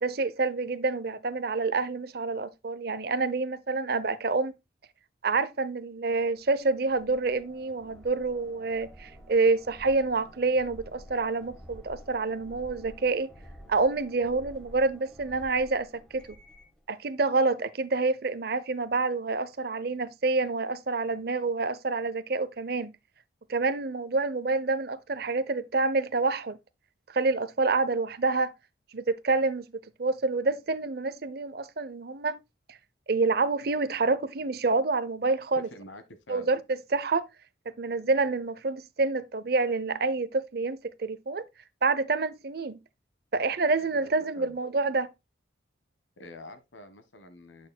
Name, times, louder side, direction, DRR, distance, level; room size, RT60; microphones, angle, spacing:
voice 1, 0.0-4.6 5.2-13.3 13.7-16.3 16.9-22.9 23.5-26.6 27.1-28.5 28.9-29.7 30.0-32.4 32.7-32.8 33.1-35.7 36.3-37.3 37.8-41.4 41.8-42.8 43.3-45.1, right 3 dB, 55° right, 0.6 m, -27 dB
sound 1, 6.2-16.8, equal, 5° left, 1.3 m, -51 dB
voice 2, 35.5-36.5 43.8-44.1 44.3-44.6 46.2-47.7, left 1 dB, 85° left, 1.4 m, -47 dB
8.6 x 6.2 x 2.2 m
head